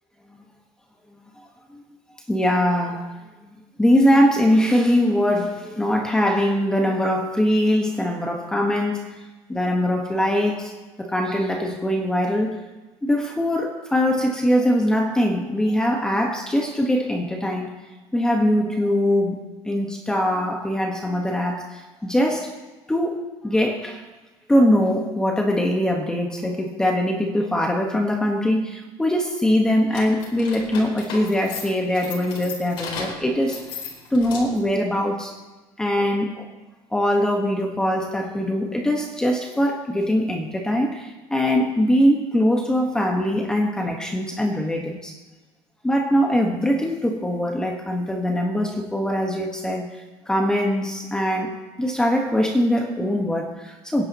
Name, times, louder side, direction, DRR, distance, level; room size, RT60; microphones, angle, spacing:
voice 1, 2.3-3.1 3.5-9.1 9.5-10.7 11.0-12.6 13.0-17.7 18.1-19.4 19.6-22.5 22.9-24.0 24.5-33.6 34.1-35.3 35.8-36.5 36.9-45.1 45.8-49.9 50.3-54.0, equal, 10° left, 1 dB, 1.5 m, -22 dB
sound 1, 29.9-34.7, left 5 dB, 65° left, 4.4 m, -35 dB
28.0 x 10.5 x 3.1 m, 1.2 s
cardioid pair, 140°, 9 cm